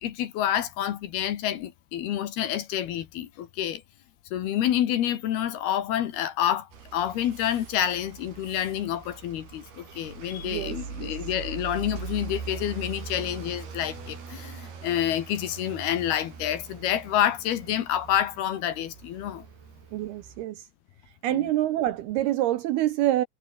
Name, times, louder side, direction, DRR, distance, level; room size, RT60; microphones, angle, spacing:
voice 1, 0.0-3.8 4.3-19.4 21.3-21.5, left 11 dB, 65° left, 3.2 m, -28 dB
sound 1, 6.7-20.4, right 6 dB, 55° right, 6.6 m, -41 dB
voice 2, 10.4-11.1 19.9-20.6 21.2-23.3, right 14 dB, 75° right, 2.5 m, -26 dB
omnidirectional pair, 5.3 m